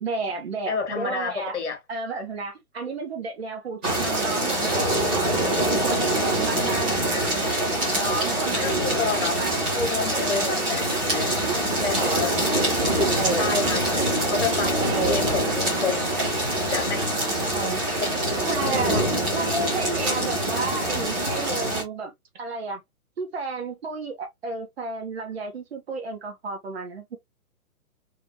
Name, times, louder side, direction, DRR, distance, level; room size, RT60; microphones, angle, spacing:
voice 1, 0.0-1.6 1.9-7.5 7.9-9.1 9.4-9.6 10.1-10.6 12.0-12.6 13.2-13.5 14.8-15.3 17.2-17.8 18.5-19.1 19.3-22.8 23.2-27.2, right 3 dB, 45° right, 1.2 m, -32 dB
voice 2, 0.7-1.8 8.6-9.4 9.8-11.3 11.7-12.3 12.9-16.1 16.7-17.1, left 5 dB, 50° left, 1.7 m, -29 dB
sound 1, 3.8-21.8, right 1 dB, 5° right, 0.5 m, -24 dB
3.5 x 3.0 x 2.8 m
figure-of-eight pair, 125°, 45 cm